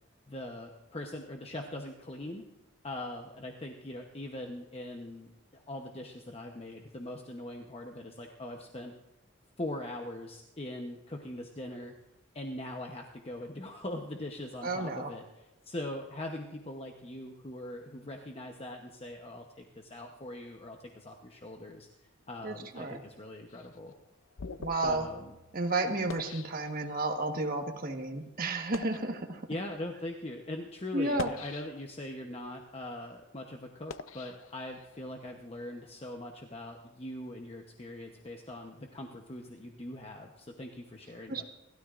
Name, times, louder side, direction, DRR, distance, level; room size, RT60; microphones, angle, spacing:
voice 1, 0.3-2.4 2.8-8.9 9.6-11.9 12.3-21.9 22.3-23.9 24.8-25.3 29.5-41.4, left 1 dB, 30° left, 2 dB, 0.9 m, -41 dB
voice 2, 14.6-15.1 22.4-23.0 24.6-25.1 25.5-29.4 30.9-31.3 41.3-41.4, right 2 dB, 45° right, 4 dB, 1.3 m, -32 dB
sound 1, 23.5-27.2 27.9-28.0 28.6-29.1 29.9-30.0 31.0-32.1 32.6-35.1, left 4 dB, 75° left, 0.6 m, -45 dB
29.5 x 13.0 x 2.5 m, 1.0 s
head